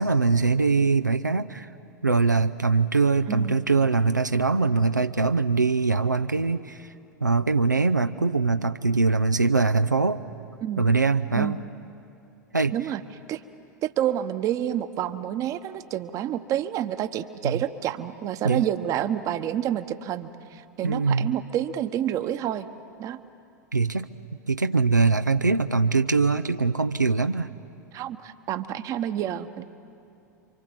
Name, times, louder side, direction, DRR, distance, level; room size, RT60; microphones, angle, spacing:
voice 1, 0.0-1.7 2.0-6.9 7.2-10.2 10.8-11.6 12.5-12.7 17.4-17.6 18.4-18.6 20.8-21.3 23.7-24.1 24.5-27.5, right 4 dB, 90° right, 8 dB, 0.6 m, -22 dB
voice 2, 13.8-22.7 23.0-23.2 27.9-29.6, right 11 dB, 35° right, 11 dB, 1.1 m, -28 dB
28.5 x 25.0 x 7.5 m, 2.6 s
figure-of-eight pair, 90°, 10 cm